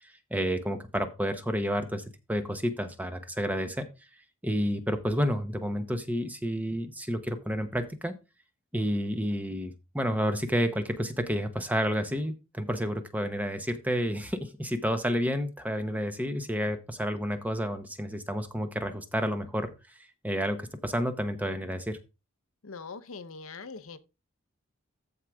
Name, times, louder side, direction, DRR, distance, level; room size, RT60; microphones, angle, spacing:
voice 1, 0.0-2.0 2.3-3.9 4.4-8.1 8.7-19.7 20.2-22.0, equal, 10° right, 0.9 m, -30 dB
voice 2, 22.6-24.0, left 4 dB, 80° left, 0.8 m, -42 dB
14.0 x 4.8 x 3.5 m
head